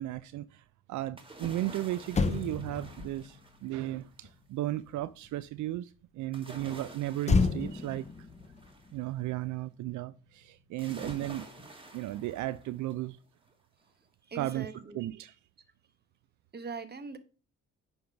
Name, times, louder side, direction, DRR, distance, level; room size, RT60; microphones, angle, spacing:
voice 1, 0.0-8.1 8.9-11.5 11.9-13.2 14.4-14.7 14.9-15.4, right 15 dB, 75° right, 0.5 m, -35 dB
sound 1, 1.2-4.0 6.3-8.9 10.8-13.1 13.5-13.6, right 2 dB, 15° right, 1.8 m, -48 dB
Motor vehicle (road), 1.6-1.7 2.0-5.6 7.2-9.8 10.1-10.4, left 4 dB, 25° left, 0.7 m, -32 dB
voice 2, 14.3-15.0 16.5-17.2, right 4 dB, 35° right, 1.2 m, -41 dB
9.4 x 3.6 x 5.8 m
cardioid pair, 90°, 30 cm